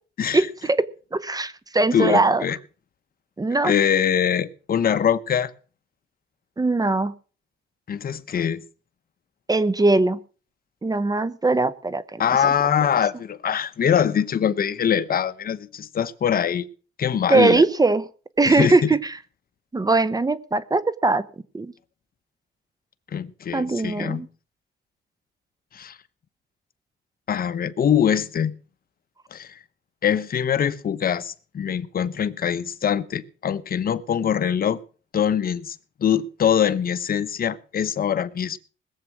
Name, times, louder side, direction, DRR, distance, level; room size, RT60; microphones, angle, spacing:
voice 1, 0.3-2.4 3.4-3.7 6.6-7.1 9.5-10.2 10.8-12.2 17.3-18.1 18.4-19.0 19.7-21.2 21.5-21.7 23.5-24.3, right 3 dB, 20° right, 0.8 m, -20 dB
voice 2, 1.9-2.6 3.6-5.5 7.9-8.6 12.2-16.7 17.0-17.6 18.5-18.9 23.1-24.3 25.7-26.0 27.3-28.6 29.3-29.6 30.0-34.8 35.1-38.6, left 8 dB, 50° left, 1.0 m, -23 dB
20.0 x 7.5 x 6.1 m
cardioid pair, 90°, 20 cm